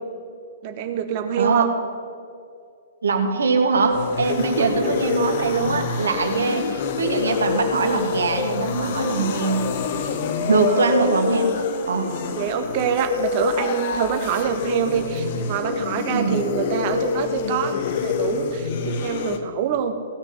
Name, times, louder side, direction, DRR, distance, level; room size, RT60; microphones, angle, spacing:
voice 1, 0.6-1.8 4.6-5.2 10.7-10.9 12.3-19.9, right 8 dB, 40° right, 6 dB, 1.5 m, -26 dB
voice 2, 1.4-1.7 3.0-9.6 10.5-12.1 16.1-16.4, right 4 dB, 70° right, 4 dB, 1.9 m, -22 dB
sound 1, 3.7-19.4, left 5 dB, 45° left, 1.1 m, -26 dB
16.5 x 6.3 x 9.5 m, 2.3 s
figure-of-eight pair, 120°, 0 cm